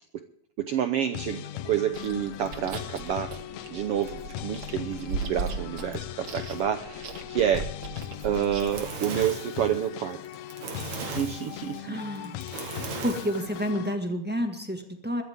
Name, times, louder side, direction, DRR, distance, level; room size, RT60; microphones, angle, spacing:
voice 1, 0.6-3.4 3.7-7.7 8.2-10.2 11.0-12.0 12.5-12.8, right 9 dB, 80° right, 9 dB, 1.3 m, -29 dB
sound 1, 1.1-13.9, left 13 dB, 75° left, 1.8 m, -39 dB
Chewing mastication, 1.9-8.9, right 4 dB, 40° right, 1.6 m, -38 dB
Fire, 8.2-13.7, right 5 dB, 60° right, 3.2 m, -38 dB
voice 2, 11.8-12.5 13.0-15.2, equal, 10° right, 4 dB, 0.6 m, -30 dB
22.0 x 14.0 x 3.6 m, 0.64 s
omnidirectional pair, 3.7 m